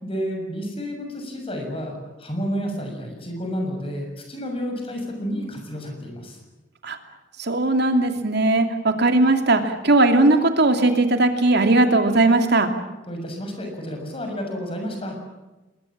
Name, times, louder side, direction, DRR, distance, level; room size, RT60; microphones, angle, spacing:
voice 1, 0.0-6.4 13.1-15.2, equal, 30° left, 3 dB, 6.9 m, -30 dB
voice 2, 7.4-12.7, right 2 dB, 60° right, 5 dB, 2.8 m, -18 dB
27.0 x 21.5 x 7.5 m, 1.1 s
head